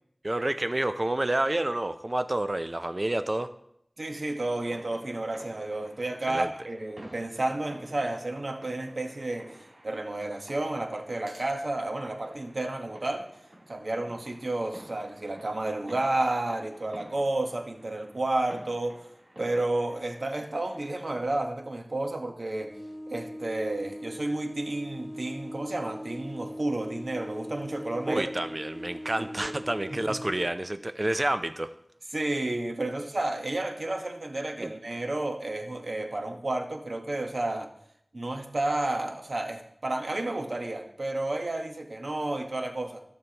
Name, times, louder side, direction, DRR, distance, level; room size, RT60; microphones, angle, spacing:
voice 1, 0.2-3.5 6.3-6.5 28.1-31.7 34.6-34.7, right 1 dB, 40° right, 10 dB, 0.5 m, -29 dB
voice 2, 4.0-13.3 13.7-19.0 19.4-22.7 23.1-28.3 29.4-29.5 30.1-30.2 32.1-37.7 38.1-43.0, right 2 dB, 80° right, 3 dB, 1.2 m, -31 dB
sound 1, 4.6-21.0, right 1 dB, 60° right, 3.2 m, -52 dB
sound 2, 22.7-30.5, equal, 65° left, 1.3 m, -41 dB
16.0 x 6.9 x 2.9 m, 0.74 s
wide cardioid pair, 40°, 0 cm